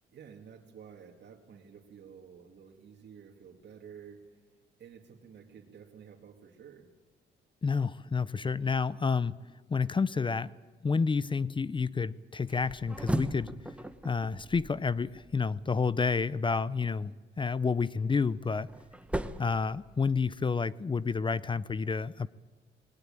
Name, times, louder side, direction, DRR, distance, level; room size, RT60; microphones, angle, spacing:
voice 1, 0.1-6.9 18.1-18.4, right 7 dB, 60° right, -1 dB, 2.4 m, -52 dB
voice 2, 7.6-9.4 9.7-10.6 10.8-13.5 14.0-18.7 19.4-22.3, left 5 dB, 25° left, 18 dB, 0.6 m, -29 dB
sound 1, 12.5-15.6 17.8-20.4, right 1 dB, 5° right, 1.1 m, -38 dB
20.0 x 17.5 x 9.1 m, 1.4 s
cardioid pair, 90°, 20 cm